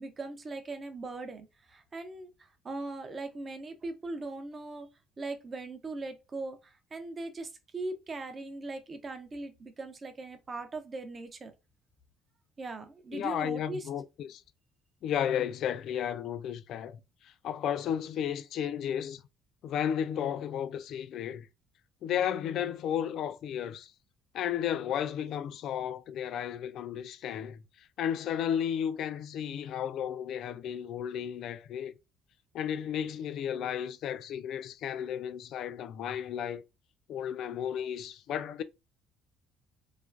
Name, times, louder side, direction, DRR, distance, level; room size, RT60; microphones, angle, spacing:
voice 1, 0.0-4.9 5.2-11.5 12.6-13.9, right 2 dB, 25° right, 0.5 m, -40 dB
voice 2, 13.1-14.4 15.0-19.2 19.6-21.5 22.0-23.9 24.3-31.9 32.5-36.6 37.1-38.6, left 9 dB, 55° left, 0.3 m, -33 dB
3.2 x 2.3 x 2.4 m
cardioid pair, 165°, 0 cm